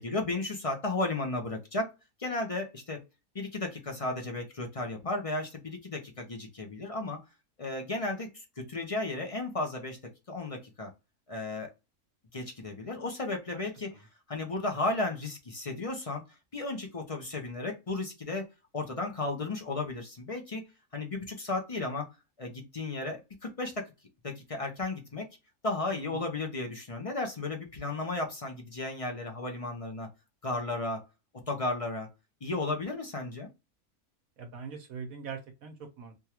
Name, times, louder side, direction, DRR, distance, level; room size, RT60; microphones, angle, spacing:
voice 1, 0.0-1.9 2.2-3.0 3.3-7.2 7.6-10.0 10.3-10.9 11.3-11.7 12.3-13.9 14.3-16.2 16.5-18.5 18.7-20.6 20.9-22.1 22.4-23.9 24.2-25.3 25.6-30.1 30.4-31.0 31.5-32.1 32.4-33.5, left 2 dB, 40° left, 2 dB, 0.5 m, -34 dB
voice 2, 13.5-14.0 25.9-26.2 34.4-36.1, right 5 dB, 70° right, 4 dB, 1.3 m, -43 dB
3.5 x 2.3 x 2.9 m, 0.25 s
omnidirectional pair, 1.5 m